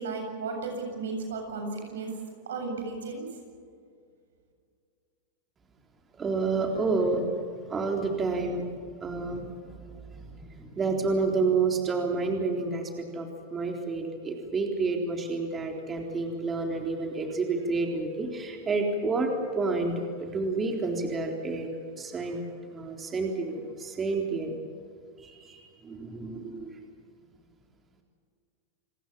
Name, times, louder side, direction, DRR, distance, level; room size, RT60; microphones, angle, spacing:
voice 1, 0.0-2.2 2.5-3.3, right 3 dB, 85° right, 3 dB, 7.9 m, -34 dB
voice 2, 6.2-21.7 22.0-22.4 22.7-24.6 25.2-26.9, right 3 dB, 20° right, 2 dB, 3.8 m, -30 dB
29.0 x 19.5 x 7.5 m, 2.2 s
hypercardioid pair, 115°, 0 cm